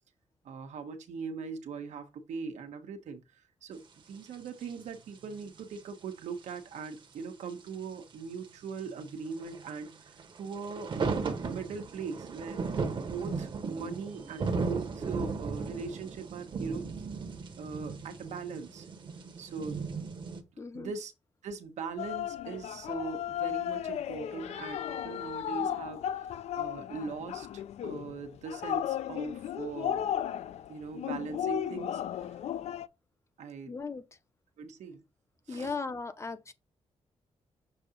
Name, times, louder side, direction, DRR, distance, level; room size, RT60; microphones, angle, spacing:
voice 1, 0.4-17.1 17.6-18.9 19.4-19.8 20.7-21.1 21.4-30.2 30.7-32.4 33.4-33.7 34.6-35.0 35.5-35.7, right 5 dB, 85° right, 1.1 m, -40 dB
sound 1, 4.3-4.4 4.6-4.7 5.2-5.8 6.5-6.6 6.9-7.0 7.5-7.7 8.4-20.4, right 4 dB, 45° right, 1.0 m, -36 dB
voice 2, 20.6-20.9 33.7-34.0 35.5-36.5, left 4 dB, 25° left, 0.6 m, -37 dB
sound 2, 22.0-32.9, left 10 dB, 70° left, 0.4 m, -35 dB
6.8 x 2.8 x 5.1 m
wide cardioid pair, 150°, 12 cm